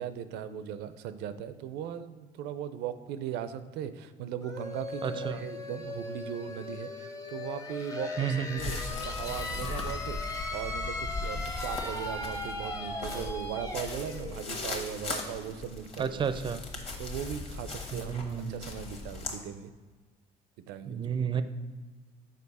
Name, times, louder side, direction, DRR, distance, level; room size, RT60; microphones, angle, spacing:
voice 1, 0.0-16.2 17.0-19.7 20.7-21.0, right 9 dB, 90° right, 12 dB, 0.5 m, -38 dB
sound 1, 4.4-15.9, left 2 dB, 20° left, 0.7 m, -39 dB
voice 2, 5.0-5.4 8.2-8.8 16.0-16.6 17.9-18.7 20.9-21.4, right 7 dB, 30° right, 12 dB, 0.4 m, -32 dB
sound 2, 8.6-19.4, left 3 dB, 35° left, 1.2 m, -39 dB
6.7 x 4.8 x 4.1 m, 1.4 s
cardioid pair, 110°, 17 cm